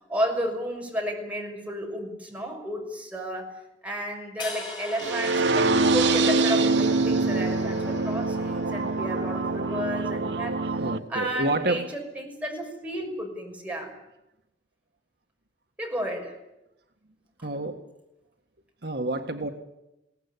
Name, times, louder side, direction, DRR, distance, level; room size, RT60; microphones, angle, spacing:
voice 1, 0.1-10.7 11.1-13.9 15.8-16.4 17.4-17.5, equal, 10° right, 0 dB, 6.1 m, -32 dB
sound 1, 4.4-10.5, left 2 dB, 25° left, 5.6 m, -42 dB
sound 2, 5.0-11.0, right 3 dB, 80° right, 1.0 m, -24 dB
voice 2, 10.8-11.9 17.4-17.9 18.8-19.5, right 2 dB, 65° right, 5 dB, 1.7 m, -28 dB
22.5 x 17.5 x 9.9 m, 0.91 s
head